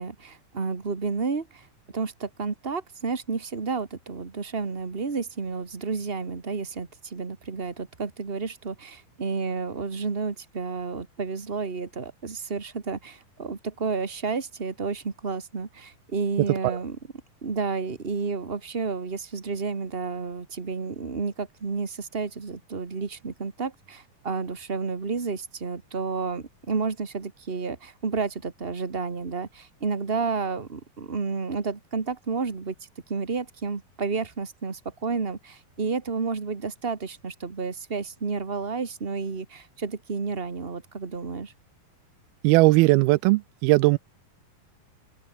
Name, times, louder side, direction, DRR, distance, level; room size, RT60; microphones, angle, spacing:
voice 1, 0.0-1.7 1.9-17.0 17.4-41.5, right 4 dB, 60° right, 0.6 m, -31 dB
voice 2, 42.4-44.0, right 22 dB, 90° right, 2.5 m, -18 dB
open air
omnidirectional pair, 4.3 m